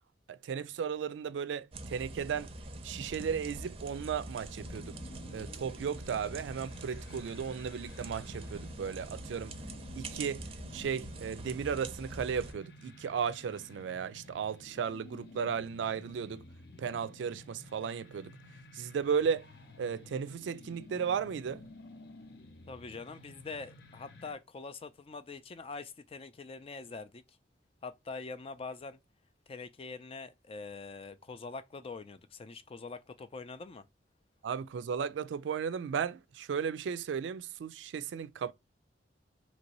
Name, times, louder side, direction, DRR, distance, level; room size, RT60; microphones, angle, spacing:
voice 1, 0.3-2.5 2.8-5.0 5.3-9.6 10.0-10.4 10.7-16.4 16.8-18.3 18.7-19.5 19.8-21.6 34.4-38.5, right 7 dB, 85° right, 0.3 m, -35 dB
sound 1, 1.7-12.5, right 2 dB, 35° right, 0.5 m, -44 dB
sound 2, 4.6-24.3, left 2 dB, 60° left, 0.7 m, -53 dB
voice 2, 22.7-27.2 27.8-29.0 29.5-33.8, left 4 dB, 30° left, 0.4 m, -44 dB
3.0 x 2.6 x 2.9 m
head